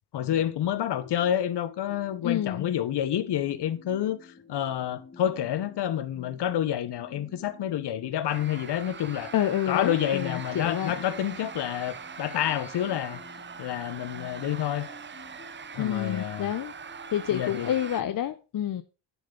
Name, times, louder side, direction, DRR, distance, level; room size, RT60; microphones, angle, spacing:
voice 1, 0.1-9.3 9.7-13.2 13.6-14.9 15.7-16.5 17.3-17.7, left 11 dB, 70° left, 1.0 m, -29 dB
sound 1, 0.7-18.2, left 4 dB, 20° left, 1.6 m, -51 dB
voice 2, 2.2-2.7 9.3-10.9 15.8-16.7 17.1-18.8, left 11 dB, 50° left, 0.7 m, -28 dB
sound 2, 8.3-18.0, right 6 dB, 25° right, 0.7 m, -42 dB
10.5 x 7.1 x 3.8 m
cardioid pair, 120°, 42 cm